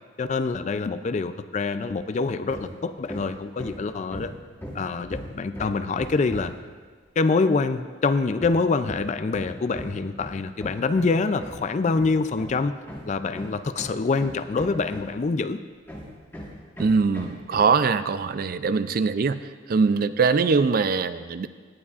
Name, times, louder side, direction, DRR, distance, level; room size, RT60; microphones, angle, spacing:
voice 1, 0.2-4.3 4.7-6.5 7.2-12.7 13.1-15.6, left 4 dB, 35° left, 11 dB, 0.3 m, -25 dB
Hammer, 2.5-2.8 3.1-6.7 8.4-15.3 15.9-17.8, equal, 10° left, 1.6 m, -39 dB
voice 2, 16.8-19.4 19.7-21.5, right 5 dB, 45° right, 13 dB, 0.3 m, -22 dB
18.5 x 9.6 x 2.4 m, 1.5 s
head